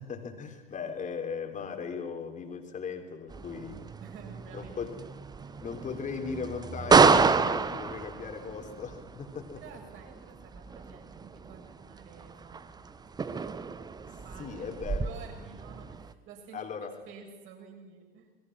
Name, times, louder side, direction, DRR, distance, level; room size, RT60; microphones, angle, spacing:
voice 1, 0.0-3.8 4.5-4.9 5.6-9.6 13.5-13.6 14.4-15.1 16.5-16.9, left 5 dB, 25° left, 4 dB, 3.7 m, -38 dB
sound 1, 3.3-16.1, right 5 dB, 15° right, 1.0 m, -29 dB
voice 2, 4.0-5.1 5.4-5.6 9.6-13.2 13.5-16.7 17.1-18.3, right 6 dB, 40° right, 2 dB, 7.0 m, -51 dB
28.5 x 21.5 x 6.2 m, 1.2 s
figure-of-eight pair, 85°, 31 cm